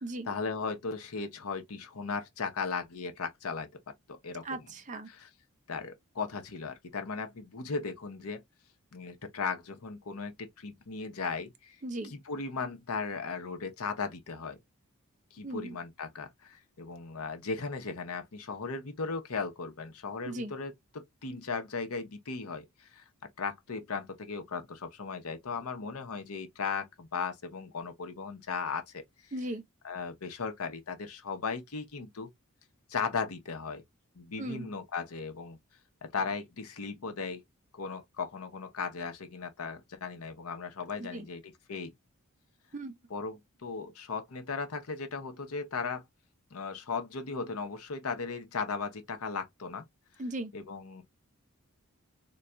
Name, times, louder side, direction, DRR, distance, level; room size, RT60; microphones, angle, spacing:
voice 1, 0.2-3.7 4.1-4.4 5.1-5.3 5.7-8.4 8.9-11.8 12.0-14.6 15.3-23.0 23.4-29.0 29.8-32.3 32.9-33.8 34.1-35.6 36.0-37.4 37.7-41.9 43.1-46.0 46.5-49.8 50.5-51.0, left 4 dB, 80° left, 0.7 m, -37 dB
voice 2, 4.4-5.1 11.8-12.1 15.4-15.8 20.2-20.5 29.3-29.6 34.4-34.7 41.0-41.3 42.7-42.9 50.2-50.5, right 1 dB, 35° right, 0.5 m, -37 dB
3.9 x 2.2 x 2.2 m
head